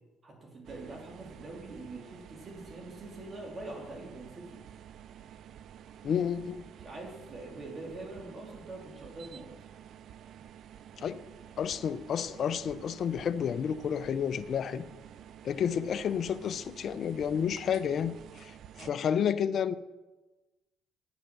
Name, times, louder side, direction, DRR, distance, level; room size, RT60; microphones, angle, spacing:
voice 1, 0.2-4.6 6.8-9.5 18.8-19.0, right 2 dB, 40° right, 2.7 m, -44 dB
sound 1, 0.6-18.9, right 9 dB, 65° right, 0.4 m, -50 dB
voice 2, 6.0-6.6 11.0-11.2 11.6-14.9 15.4-19.7, left 8 dB, 60° left, 0.5 m, -31 dB
9.2 x 8.0 x 6.0 m
supercardioid pair, 75°, 0 cm